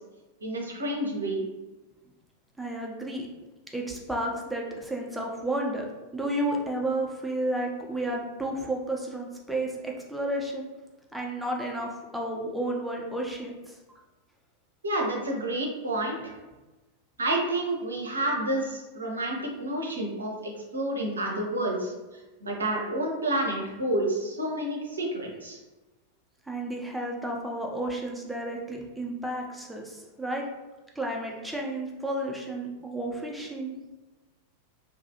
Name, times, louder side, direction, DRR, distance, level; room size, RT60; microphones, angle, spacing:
voice 1, 0.4-1.5 14.8-16.3 17.2-21.9 22.4-25.6, right 1 dB, 75° right, 0 dB, 0.6 m, -29 dB
voice 2, 2.6-3.3 3.7-5.9 6.1-10.7 11.1-13.8 26.5-30.4 31.0-33.7, right 1 dB, 5° right, -1 dB, 0.5 m, -32 dB
2.7 x 2.3 x 2.7 m, 1.1 s
figure-of-eight pair, 90°, 0 cm